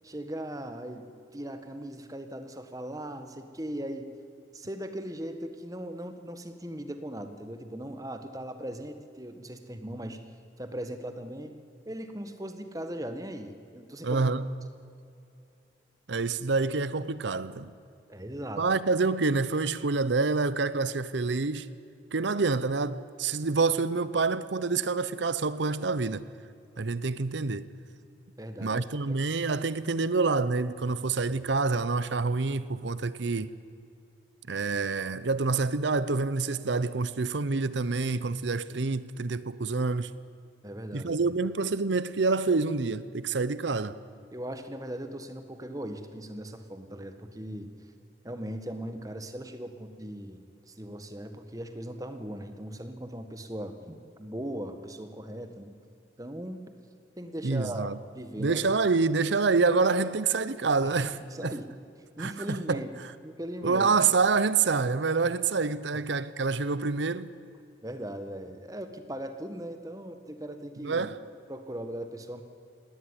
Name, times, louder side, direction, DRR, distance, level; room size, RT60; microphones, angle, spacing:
voice 1, 0.0-1.0 1.3-4.1 4.5-10.2 10.6-11.5 11.8-14.2 18.1-18.6 28.4-28.8 40.6-41.1 44.3-47.7 48.2-55.7 56.2-56.6 57.2-58.7 60.8-61.0 61.3-61.7 62.2-62.9 63.2-63.9 67.8-71.1 71.5-72.4, right 1 dB, 20° right, 1.5 m, -39 dB
voice 2, 14.0-14.5 16.1-17.7 18.6-21.7 22.1-26.2 26.8-27.7 28.6-33.5 34.5-40.1 40.9-44.0 57.4-58.0 58.4-61.5 62.2-62.8 63.6-67.3 70.8-71.2, right 4 dB, 75° right, 0.8 m, -27 dB
19.0 x 17.5 x 9.8 m
head